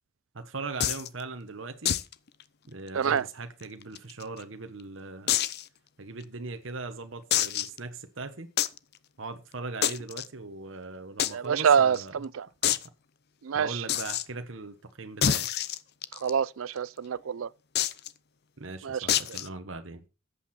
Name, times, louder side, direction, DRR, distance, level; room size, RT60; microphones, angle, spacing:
voice 1, 0.3-1.9 2.7-5.3 6.0-8.5 9.2-12.1 12.7-12.8 13.5-15.5 18.6-20.0, right 3 dB, 70° right, 1.2 m, -39 dB
sound 1, 0.8-1.1 1.9-2.1 2.4-2.5 2.9-3.0 3.6-4.4 5.3-5.6 6.2-6.3 7.3-7.8 8.6-8.8 9.8-10.3 11.2-11.3 11.6-11.7 11.9-12.0 12.6-12.9 13.9-14.2 15.2-16.3 17.8-18.1 19.1-19.5, left 10 dB, 55° left, 0.7 m, -27 dB
voice 2, 11.3-12.5 13.4-13.8 16.2-17.5 18.8-19.1, right 7 dB, 90° right, 0.5 m, -26 dB
13.5 x 8.3 x 4.3 m
head